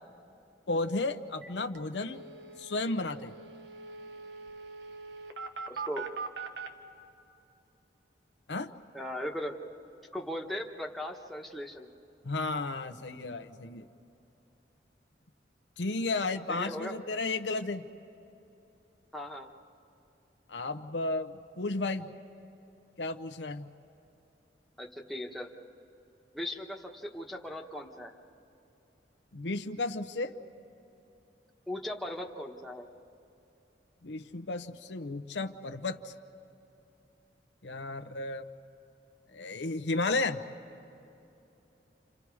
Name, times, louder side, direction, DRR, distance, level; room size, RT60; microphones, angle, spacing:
voice 1, 0.7-2.2 2.6-3.3 8.5-8.7 12.2-13.9 15.8-17.9 20.5-22.1 23.0-23.7 29.3-30.3 34.0-36.1 37.6-38.5 39.3-40.4, left 3 dB, 85° left, 8 dB, 0.8 m, -33 dB
sound 1, 1.4-1.5 1.8-1.9 2.1-6.7, right 5 dB, 75° right, 1.2 m, -42 dB
voice 2, 5.7-6.1 8.9-9.6 10.1-11.9 16.5-16.9 19.1-19.5 24.8-25.5 26.3-28.1 31.7-32.9, left 1 dB, ahead, -1 dB, 1.3 m, -38 dB
30.0 x 27.5 x 4.8 m, 2.9 s
head